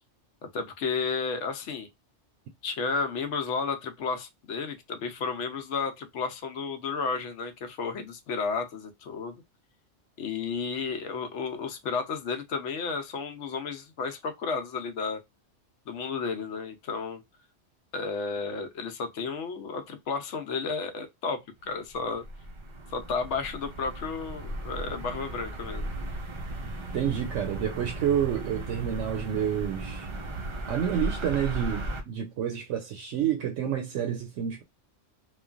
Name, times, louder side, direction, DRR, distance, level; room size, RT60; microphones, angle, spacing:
voice 1, 0.5-1.9 2.6-9.4 10.2-15.2 15.9-17.2 17.9-22.2 22.9-25.9, left 5 dB, 80° left, 0.9 m, -32 dB
sound 1, 21.7-32.0, right 2 dB, 45° right, 0.4 m, -36 dB
voice 2, 26.9-30.1 30.7-34.6, right 9 dB, 80° right, 0.9 m, -29 dB
3.1 x 2.2 x 2.3 m
omnidirectional pair, 1.2 m